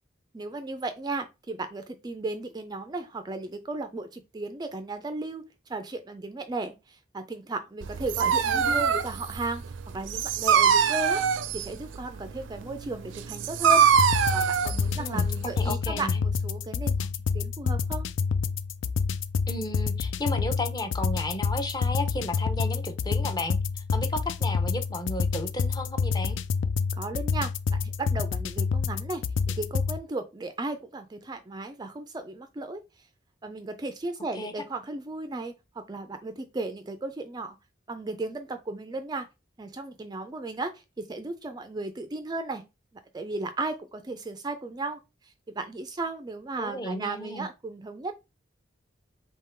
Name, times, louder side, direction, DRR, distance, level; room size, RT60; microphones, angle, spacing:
voice 1, 0.3-5.4 5.7-9.6 9.9-11.2 11.5-13.9 14.3-18.1 27.0-29.2 29.6-33.1 33.4-37.6 37.9-39.3 39.6-42.6 43.1-48.1, right 2 dB, 20° right, 0.3 m, -35 dB
Dog, 7.8-15.7, right 7 dB, 85° right, 0.5 m, -24 dB
voice 2, 8.2-8.8 15.0-15.3 15.6-16.2 19.5-23.6 23.9-26.4 34.3-34.5 46.6-47.5, left 1 dB, 20° left, 0.7 m, -33 dB
sound 1, 13.9-30.0, left 5 dB, 80° left, 0.4 m, -28 dB
3.6 x 2.8 x 4.3 m
head